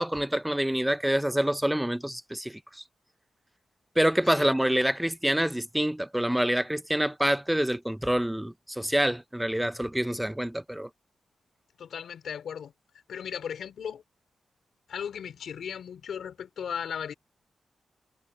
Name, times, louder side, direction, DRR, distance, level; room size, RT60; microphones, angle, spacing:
voice 1, 0.0-2.8 4.0-10.9, right 1 dB, 5° right, 0.6 m, -27 dB
voice 2, 11.8-12.7 13.1-14.0 14.9-17.1, left 8 dB, 80° left, 4.1 m, -36 dB
wide cardioid pair, 140°, 0 cm